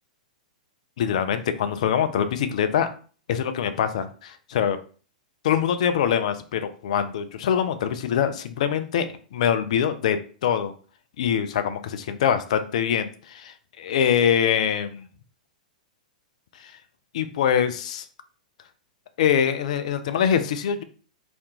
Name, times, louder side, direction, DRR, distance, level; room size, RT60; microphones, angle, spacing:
voice 1, 1.0-2.9 3.3-4.8 5.4-10.7 11.2-15.1 16.6-16.7 17.1-18.1 19.2-20.8, left 8 dB, 60° left, 10 dB, 0.3 m, -24 dB
2.4 x 2.1 x 2.8 m, 0.40 s
figure-of-eight pair, 105°, 4 cm